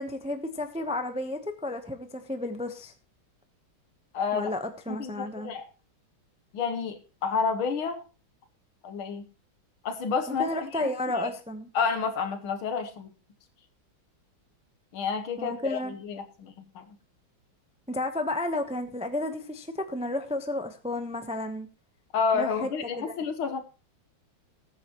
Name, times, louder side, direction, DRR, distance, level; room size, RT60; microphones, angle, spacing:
voice 1, 0.0-2.9 4.3-5.5 10.3-11.7 15.4-15.9 17.9-21.7 22.3-22.7 23.0-23.2, left 1 dB, 10° right, 7 dB, 0.3 m, -32 dB
voice 2, 4.1-4.5 4.9-5.7 6.5-8.0 8.8-9.2 9.8-11.3 11.8-13.1 14.9-17.0 22.1-23.6, left 5 dB, 85° left, 7 dB, 2.0 m, -30 dB
20.0 x 8.9 x 3.1 m, 0.33 s
omnidirectional pair, 2.2 m